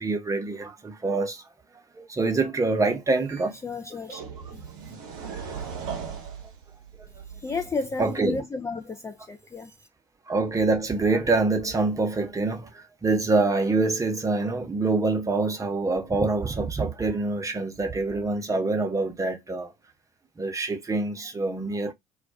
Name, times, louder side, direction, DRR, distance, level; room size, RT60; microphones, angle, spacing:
voice 1, 0.0-1.4 1.9-3.6 4.1-4.3 5.3-5.7 8.0-8.4 10.3-19.7 20.4-21.9, right 3 dB, 20° right, 0.7 m, -25 dB
sound 1, 3.3-3.4 4.1-7.9, right 6 dB, 65° right, 0.7 m, -38 dB
voice 2, 3.6-4.2 4.5-4.6 7.4-9.7, left 4 dB, 15° left, 0.4 m, -32 dB
2.2 x 2.2 x 2.5 m
figure-of-eight pair, 50°, 18 cm